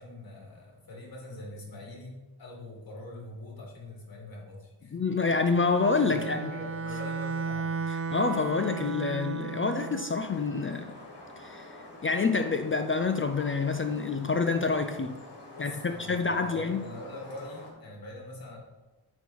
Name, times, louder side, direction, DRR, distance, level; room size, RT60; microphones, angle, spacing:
voice 1, 0.0-5.0 6.1-7.8 15.5-18.6, left 2 dB, 55° left, -2 dB, 2.2 m, -43 dB
voice 2, 4.9-6.4 7.9-10.9 11.4-11.7 12.0-15.2 15.6-16.8, left 4 dB, 30° left, 7 dB, 0.4 m, -27 dB
Bowed string instrument, 5.7-10.2, right 5 dB, 35° right, 0.6 m, -34 dB
sound 1, 10.2-17.7, left 1 dB, 70° left, 1.8 m, -47 dB
8.9 x 3.0 x 5.5 m, 1.2 s
wide cardioid pair, 125°, 41 cm